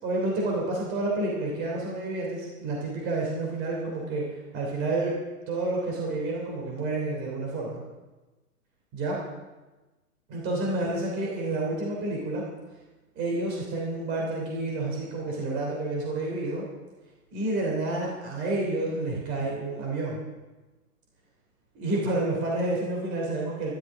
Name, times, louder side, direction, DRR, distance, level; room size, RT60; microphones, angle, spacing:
voice 1, 0.0-4.2 4.5-5.1 5.5-7.8 8.9-9.2 10.3-12.4 13.1-16.6 17.3-20.2 21.7-23.7, right 2 dB, 20° right, -2 dB, 3.1 m, -29 dB
23.0 x 12.5 x 3.7 m, 1.2 s
hypercardioid pair, 155°, 47 cm